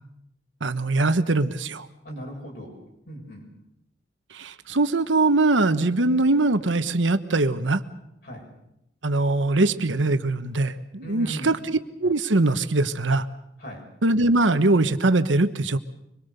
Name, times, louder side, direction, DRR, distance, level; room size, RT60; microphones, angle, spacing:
voice 1, 0.6-1.9 4.3-7.8 9.0-13.3 14.0-15.8, right 2 dB, 85° right, 10 dB, 1.2 m, -22 dB
voice 2, 2.0-2.8 3.1-3.4 8.2-8.5 11.0-11.5 13.6-13.8, right 1 dB, 55° left, -1 dB, 6.7 m, -37 dB
24.5 x 22.5 x 6.8 m, 0.84 s
head